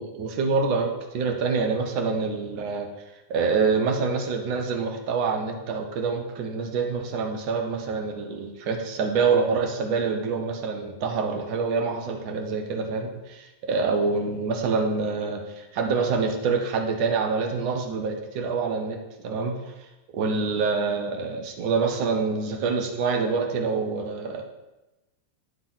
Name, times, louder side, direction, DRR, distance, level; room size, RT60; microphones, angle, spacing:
voice 1, 0.0-2.9 3.3-19.6 20.1-24.4, right 4 dB, 45° right, 3 dB, 1.3 m, -26 dB
9.4 x 3.7 x 6.4 m, 1.0 s
figure-of-eight pair, 90°, 0 cm